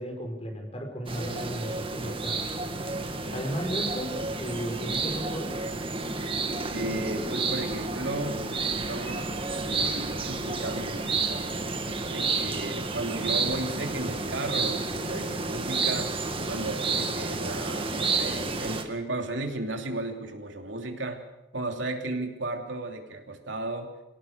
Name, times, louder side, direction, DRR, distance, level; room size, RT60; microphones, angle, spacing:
voice 1, 0.0-2.4 3.3-5.5, equal, 35° left, 4 dB, 4.9 m, -35 dB
sound 1, 1.1-18.8, right 3 dB, 30° right, 2.0 m, -30 dB
voice 2, 6.7-9.2 9.7-11.4 12.1-16.1 16.5-21.2 21.5-23.9, right 2 dB, 85° right, 4 dB, 3.1 m, -34 dB
25.5 x 17.5 x 6.7 m, 0.98 s
head